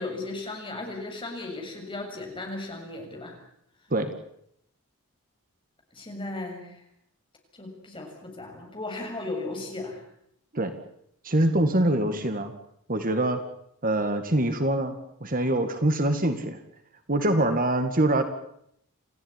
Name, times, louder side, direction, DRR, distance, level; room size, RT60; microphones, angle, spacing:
voice 1, 0.0-3.4 5.9-6.8 7.5-10.0, left 2 dB, 25° left, 2 dB, 7.1 m, -36 dB
voice 2, 11.2-12.5 12.9-13.4 13.8-16.6 17.1-18.2, right 1 dB, 40° right, 8 dB, 2.1 m, -24 dB
28.5 x 15.5 x 9.9 m, 0.74 s
head